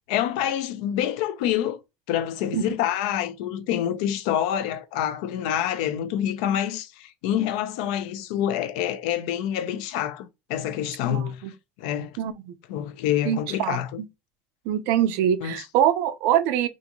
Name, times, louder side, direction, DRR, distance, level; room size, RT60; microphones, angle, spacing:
voice 1, 0.1-1.8 2.1-11.4 11.8-12.2 12.7-14.0 15.4-15.7, left 11 dB, 85° left, 0.5 m, -27 dB
voice 2, 11.1-11.5 12.2-12.5 13.3-13.8 14.7-16.7, right 10 dB, 60° right, 0.5 m, -24 dB
3.6 x 2.5 x 2.9 m
cardioid pair, 170°, 4 cm